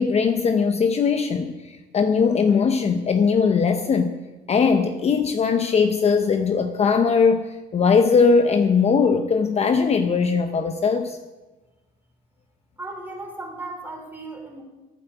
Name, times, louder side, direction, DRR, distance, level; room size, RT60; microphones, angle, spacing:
voice 1, 0.0-4.2 4.5-11.2, left 5 dB, 35° left, 7 dB, 0.8 m, -20 dB
voice 2, 12.8-14.6, right 2 dB, 10° right, 2 dB, 3.7 m, -36 dB
12.5 x 9.5 x 8.0 m, 1.2 s
cardioid pair, 125°, 19 cm